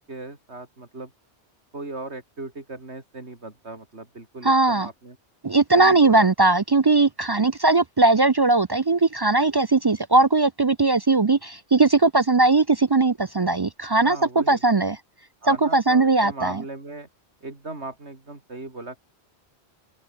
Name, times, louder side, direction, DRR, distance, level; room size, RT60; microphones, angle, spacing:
voice 1, 0.1-1.1 1.7-5.2 5.7-6.3 7.4-7.5 14.0-14.6 15.4-17.1 17.4-19.0, right 2 dB, 90° right, 4.2 m, -38 dB
voice 2, 4.4-4.9 5.4-15.0 15.5-16.6, right 3 dB, 40° right, 0.3 m, -19 dB
open air
omnidirectional pair, 1.1 m